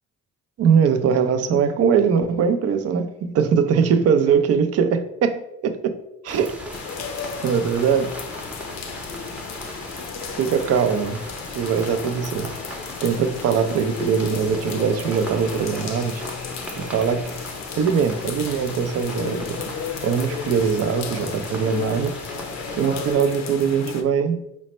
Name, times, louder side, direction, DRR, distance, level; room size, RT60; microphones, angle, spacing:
voice 1, 0.6-6.0 6.2-6.6 7.1-7.2 7.4-8.2 10.4-11.2 11.5-12.6 13.0-16.2 16.8-17.3 17.7-19.7 20.0-22.1 22.8-24.4, right 6 dB, 55° right, 0.4 m, -21 dB
sound 1, 6.3-23.1, equal, 5° right, 0.7 m, -38 dB
sound 2, 6.7-24.0, left 6 dB, 65° left, 0.5 m, -34 dB
4.1 x 2.1 x 4.1 m
cardioid pair, 90°, 30 cm